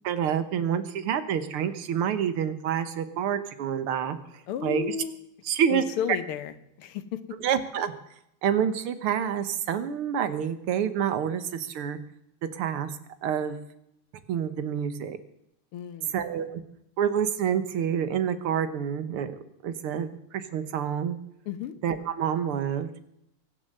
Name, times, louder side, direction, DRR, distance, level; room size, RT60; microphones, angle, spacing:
voice 1, 0.0-4.2 4.6-5.0 5.5-5.8 7.4-7.9 8.4-12.0 12.5-12.9 13.2-13.6 14.3-15.2 16.1-16.6 17.0-19.4 19.6-21.2 21.8-22.9, right 8 dB, 80° right, 11 dB, 2.0 m, -28 dB
voice 2, 4.5-5.2 5.7-7.2 15.7-16.2 21.5-21.7, left 9 dB, 90° left, 12 dB, 1.9 m, -33 dB
23.0 x 7.7 x 6.6 m, 0.79 s
omnidirectional pair, 2.4 m